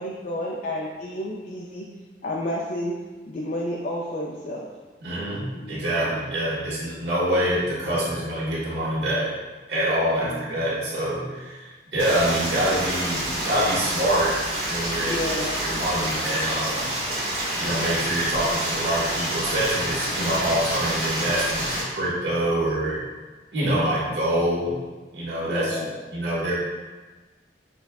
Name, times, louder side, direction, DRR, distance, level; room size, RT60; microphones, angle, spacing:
voice 1, 0.0-1.9 2.2-2.9 3.3-4.7 5.5-5.8 10.2-10.5 15.0-16.1 25.5-26.1, left 1 dB, 45° left, -3 dB, 0.4 m, -31 dB
voice 2, 5.0-9.3 9.7-14.4 14.7-16.9 17.6-23.0 23.5-24.8 25.1-25.8 26.1-26.6, right 1 dB, 60° right, -8 dB, 1.4 m, -25 dB
Stream, 12.0-21.8, right 1 dB, 40° right, 1.4 m, -28 dB
6.3 x 2.3 x 2.3 m, 1.3 s
head